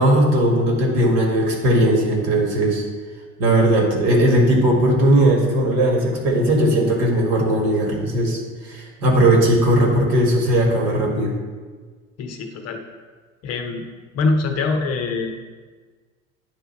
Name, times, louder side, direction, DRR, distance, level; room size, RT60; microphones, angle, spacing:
voice 1, 0.0-2.8 3.4-11.3, right 1 dB, 55° right, 0 dB, 1.8 m, -18 dB
voice 2, 12.2-12.8 13.4-13.9 14.1-15.5, left 3 dB, 40° left, 5 dB, 0.7 m, -23 dB
9.1 x 3.4 x 4.4 m, 1.4 s
figure-of-eight pair, 75°, 41 cm